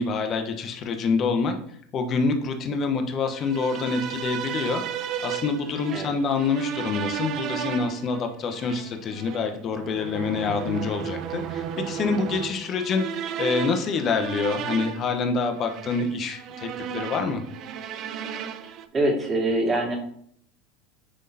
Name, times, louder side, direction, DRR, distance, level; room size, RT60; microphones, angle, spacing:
voice 1, 0.0-1.5 1.9-13.1 13.4-17.4, left 4 dB, 40° left, 6 dB, 1.0 m, -26 dB
sound 1, 3.3-18.9, right 9 dB, 50° right, 0.5 m, -34 dB
voice 2, 18.9-20.0, right 1 dB, 30° right, 0 dB, 2.3 m, -24 dB
9.8 x 3.7 x 2.8 m, 0.64 s
hypercardioid pair, 95°, 0 cm